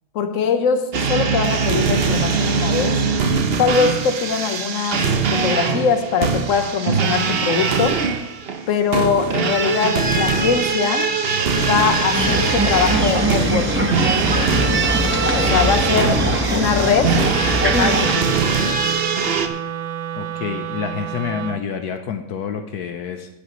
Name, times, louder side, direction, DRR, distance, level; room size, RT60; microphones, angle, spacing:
voice 1, 0.1-3.2 3.6-5.0 5.3-8.0 8.7-11.1 11.5-14.1 15.3-16.2 16.5-17.1 17.6-18.4, left 6 dB, 55° left, 7 dB, 1.4 m, -21 dB
sound 1, 0.9-19.5, right 5 dB, 45° right, 0.9 m, -21 dB
sound 2, 12.1-18.1, right 1 dB, 10° right, 1.0 m, -21 dB
Wind instrument woodwind instrument, 17.3-21.6, right 10 dB, 70° right, 1.0 m, -30 dB
voice 2, 20.1-23.3, left 7 dB, 75° left, 6 dB, 1.3 m, -28 dB
17.5 x 8.6 x 3.1 m, 0.97 s
omnidirectional pair, 1.7 m